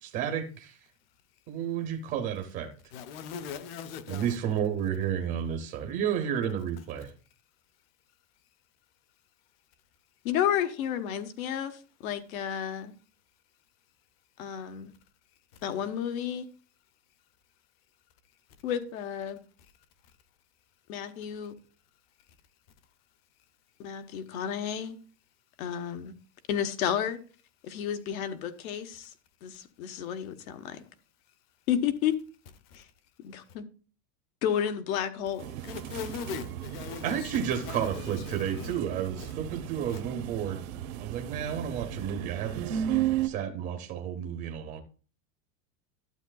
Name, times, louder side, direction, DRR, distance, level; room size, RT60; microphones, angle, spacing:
voice 1, 0.0-0.5 1.5-2.7 4.1-7.1 37.0-40.7 41.0-44.8, right 9 dB, 20° right, 0.5 m, -31 dB
voice 2, 2.9-4.4 35.6-38.7 39.2-39.3 39.9-40.0, left 7 dB, 45° left, 0.8 m, -40 dB
voice 3, 10.2-12.9 14.4-14.9 15.6-16.5 18.6-19.4 20.9-21.5 23.8-25.0 25.6-26.1 26.5-27.2 27.6-29.1 29.4-30.8 31.7-32.2 33.2-33.6 34.4-35.5, left 9 dB, 85° left, 1.1 m, -31 dB
sound 1, 35.4-43.3, right 11 dB, 80° right, 1.0 m, -35 dB
12.5 x 7.7 x 2.3 m
supercardioid pair, 180°, 41 cm